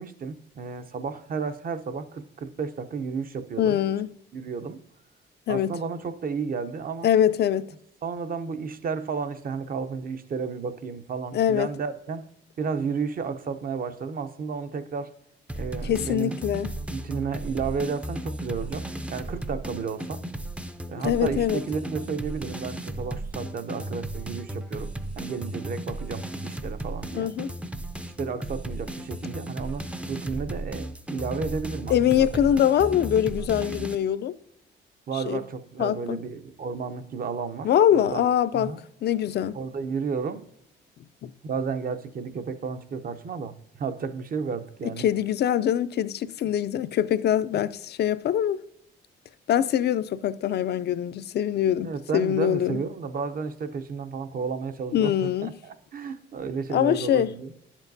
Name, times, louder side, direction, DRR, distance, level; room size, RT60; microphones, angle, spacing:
voice 1, 0.0-3.8 4.3-4.8 5.5-7.1 8.0-12.3 12.6-15.1 15.5-16.3 16.9-20.2 20.9-24.9 25.2-27.3 28.0-29.8 30.1-32.3 35.1-38.2 38.5-38.8 39.5-40.5 41.4-45.1 51.8-57.5, right 5 dB, 45° right, 0.7 m, -32 dB
voice 2, 3.6-4.1 5.5-5.7 7.0-7.7 11.3-11.7 15.8-16.7 21.0-21.6 27.1-27.5 31.9-34.3 35.1-35.4 35.8-36.2 37.6-39.6 41.2-41.3 45.0-48.6 49.5-52.8 54.9-55.5 56.7-57.3, left 10 dB, 55° left, 0.4 m, -23 dB
sound 1, 15.5-34.0, right 1 dB, 5° right, 0.4 m, -35 dB
10.5 x 7.2 x 2.6 m
cardioid pair, 90°, 20 cm